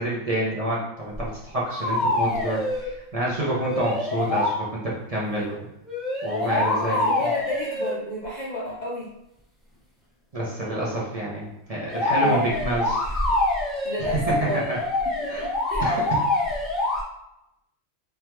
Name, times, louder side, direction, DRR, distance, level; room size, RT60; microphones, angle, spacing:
voice 1, 0.0-5.7 6.2-7.1 10.3-13.0 14.0-14.8 15.3-15.5 15.8-16.2, right 1 dB, 30° right, -6 dB, 0.8 m, -28 dB
sound 1, 1.1-1.3 1.6-2.9 3.5-4.6 5.8-8.0 11.9-17.0, left 2 dB, ahead, 0.7 m, -25 dB
voice 2, 6.4-9.1 12.2-12.3 13.8-14.6 15.2-15.9, left 1 dB, 45° left, -5 dB, 0.6 m, -32 dB
3.6 x 3.5 x 3.1 m, 0.87 s
omnidirectional pair, 1.4 m